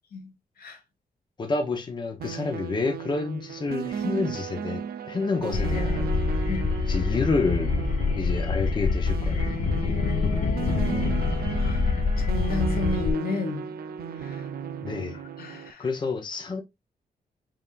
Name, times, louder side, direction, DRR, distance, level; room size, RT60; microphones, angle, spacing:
voice 1, 1.4-6.2 6.9-7.8 8.1-9.5 14.8-15.2 15.8-16.6, left 4 dB, 30° left, 0.9 m, -29 dB
sound 1, 2.2-15.7, right 7 dB, 85° right, 0.5 m, -35 dB
sound 2, 5.5-13.1, left 4 dB, 55° left, 1.0 m, -26 dB
voice 2, 9.8-11.3 11.5-11.9 12.2-13.7 14.2-14.4 15.4-15.8, left 4 dB, 80° left, 1.4 m, -33 dB
5.6 x 3.5 x 2.5 m
wide cardioid pair, 155°, 15 cm